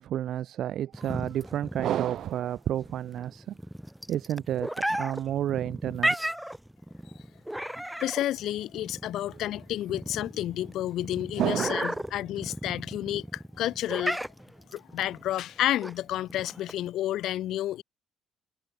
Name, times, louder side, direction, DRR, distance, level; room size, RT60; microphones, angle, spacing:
voice 1, 0.0-3.6 4.1-6.2 11.4-12.0, right 11 dB, 65° right, 1.6 m, -30 dB
sound 1, 0.9-16.9, equal, 5° right, 6.0 m, -35 dB
voice 2, 8.0-14.2 14.7-17.8, left 13 dB, 70° left, 2.7 m, -30 dB
cardioid pair, 110°, 0 cm